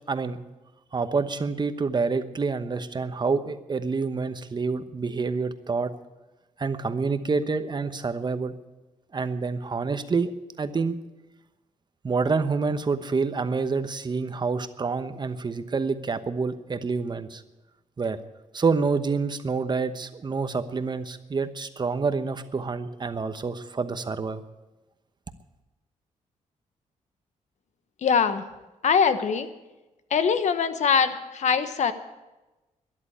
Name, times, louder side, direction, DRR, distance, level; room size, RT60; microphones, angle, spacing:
voice 1, 0.1-0.4 0.9-5.9 6.6-8.5 9.1-10.3 10.6-11.0 12.0-17.4 18.0-18.2 18.5-24.4, right 4 dB, 35° right, 10 dB, 1.0 m, -27 dB
voice 2, 28.0-28.4 28.8-29.5 30.1-31.9, left 6 dB, 60° left, 10 dB, 1.2 m, -22 dB
13.0 x 11.0 x 8.9 m, 1.1 s
cardioid pair, 100°, 13 cm